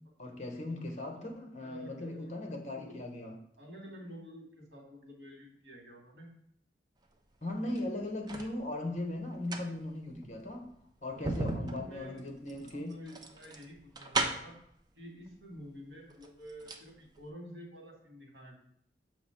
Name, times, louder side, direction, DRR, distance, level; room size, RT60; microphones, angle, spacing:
voice 1, 0.2-3.3 7.4-10.7 11.0-12.9, left 1 dB, 40° left, 2 dB, 1.1 m, -38 dB
voice 2, 1.6-2.3 2.7-3.0 3.6-6.3 11.1-12.3 12.7-14.5 14.9-18.5, equal, 75° right, 0 dB, 1.9 m, -49 dB
sound 1, 7.6-8.5 9.3-14.7 15.6-15.7 16.1-16.9 17.2-17.3, right 2 dB, 25° right, 0.5 m, -37 dB
7.1 x 3.0 x 5.7 m, 0.70 s
head